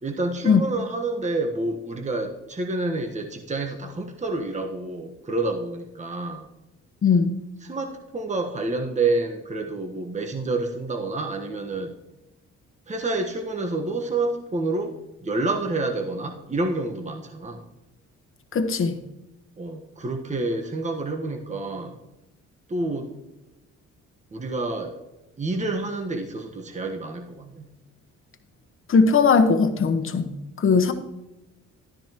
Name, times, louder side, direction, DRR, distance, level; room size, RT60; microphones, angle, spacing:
voice 1, 0.0-6.5 7.6-12.0 12.9-17.7 19.6-22.0 22.7-23.1 24.3-24.9 25.4-27.7, right 2 dB, 25° right, 4 dB, 1.2 m, -28 dB
voice 2, 7.0-7.3 18.5-19.0 28.9-30.9, left 5 dB, 45° left, 8 dB, 1.2 m, -19 dB
12.5 x 10.0 x 3.0 m, 0.98 s
cardioid pair, 90°, 30 cm